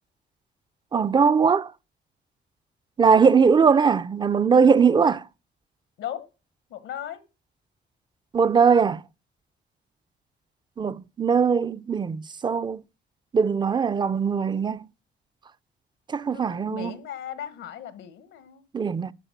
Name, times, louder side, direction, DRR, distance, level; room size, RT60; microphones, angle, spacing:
voice 1, 0.9-1.7 3.0-5.2 8.3-9.0 10.8-12.8 13.3-14.9 16.1-17.0 18.7-19.1, right 6 dB, 20° right, 0.4 m, -20 dB
voice 2, 6.7-7.2 16.3-18.6, left 10 dB, 85° left, 1.1 m, -37 dB
11.5 x 4.2 x 6.8 m
cardioid pair, 90°, 20 cm